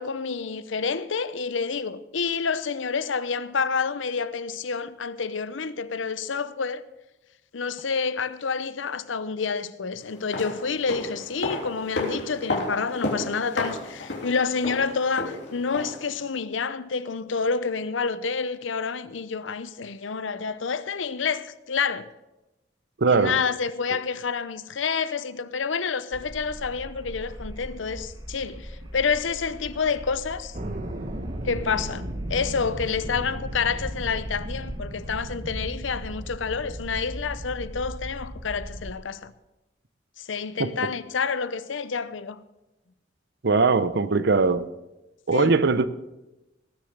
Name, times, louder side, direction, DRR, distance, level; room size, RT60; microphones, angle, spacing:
voice 1, 0.0-6.8 7.5-22.1 23.1-30.6 31.4-39.3 40.2-42.4 44.5-44.6 45.3-45.6, left 5 dB, 90° left, 0.7 m, -28 dB
sound 1, 10.1-16.1 16.4-16.5, left 2 dB, 65° left, 3.2 m, -32 dB
voice 2, 23.0-23.3 40.6-40.7 43.4-44.6 45.3-45.9, right 4 dB, 60° right, 0.7 m, -20 dB
sound 2, 26.1-35.2, equal, 20° right, 1.5 m, -41 dB
sound 3, 30.5-38.9, right 1 dB, 45° right, 1.0 m, -35 dB
19.5 x 6.8 x 6.6 m
head